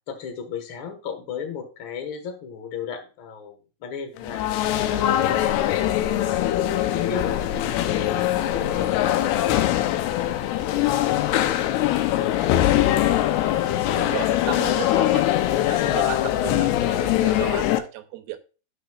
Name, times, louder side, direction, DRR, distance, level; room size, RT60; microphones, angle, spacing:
voice 1, 0.1-5.6 5.9-11.1 11.4-13.2, left 7 dB, 60° left, 6 dB, 1.3 m, -36 dB
sound 1, 4.2-17.8, left 13 dB, 85° left, 2.8 m, -22 dB
voice 2, 14.0-15.3 15.7-18.4, right 12 dB, 80° right, 9 dB, 2.4 m, -34 dB
12.5 x 6.7 x 2.4 m, 0.34 s
omnidirectional pair, 4.6 m